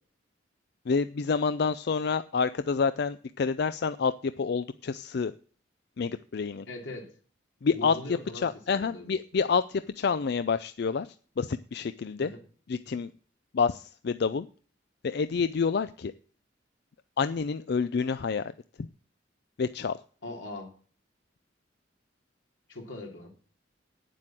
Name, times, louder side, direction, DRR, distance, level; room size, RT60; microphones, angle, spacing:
voice 1, 0.9-5.3 6.0-6.7 7.6-8.0 8.4-11.1 11.4-12.3 12.7-13.1 13.5-14.5 15.0-16.1 17.2-18.4 19.6-20.0, left 5 dB, 55° left, 12 dB, 0.4 m, -28 dB
voice 2, 6.7-7.1 7.6-9.2 12.2-12.4 20.2-20.7 22.7-23.3, left 2 dB, 90° left, 1 dB, 3.1 m, -41 dB
9.2 x 7.7 x 7.5 m, 0.42 s
head